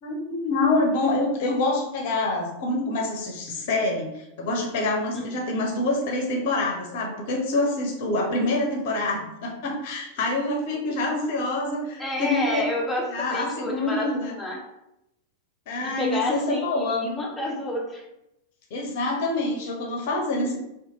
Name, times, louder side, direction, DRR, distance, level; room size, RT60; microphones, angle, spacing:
voice 1, 0.0-12.6 13.1-14.3 15.7-17.2 18.7-20.6, left 2 dB, 50° left, 0 dB, 0.6 m, -26 dB
voice 2, 12.0-14.6 15.8-18.0, left 1 dB, 10° left, -3 dB, 0.5 m, -29 dB
2.7 x 2.2 x 2.8 m, 0.85 s
figure-of-eight pair, 90°, 0 cm